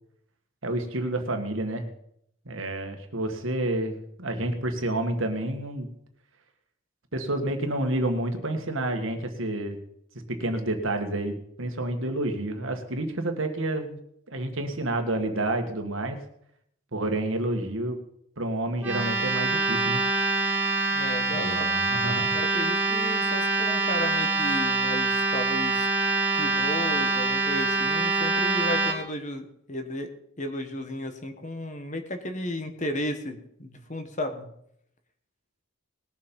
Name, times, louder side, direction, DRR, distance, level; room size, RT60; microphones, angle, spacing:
voice 1, 0.6-1.9 2.5-5.9 7.1-9.8 10.3-14.0 14.3-16.2 16.9-18.0 18.4-20.0 21.3-22.4, right 1 dB, 60° right, 5 dB, 1.8 m, -29 dB
sound 1, 18.8-28.9, right 3 dB, 5° right, 2.6 m, -25 dB
voice 2, 20.9-21.7 22.3-25.9 26.3-30.1 30.4-34.5, left 1 dB, 35° left, 7 dB, 1.4 m, -34 dB
20.0 x 7.3 x 5.4 m, 0.72 s
head